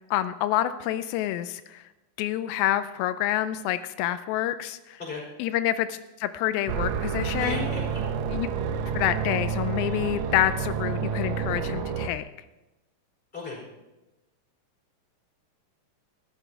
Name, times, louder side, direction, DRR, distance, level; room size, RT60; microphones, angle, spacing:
voice 1, 0.1-1.8 2.2-5.0 5.4-7.7 8.3-8.5 8.9-12.3, left 13 dB, 90° left, 12 dB, 2.4 m, -27 dB
sound 1, 6.7-12.1, right 6 dB, 85° right, 1.7 m, -29 dB
voice 2, 7.4-8.0 13.3-13.6, left 3 dB, 15° left, -3 dB, 4.8 m, -35 dB
14.0 x 12.0 x 4.5 m, 1.0 s
omnidirectional pair, 4.2 m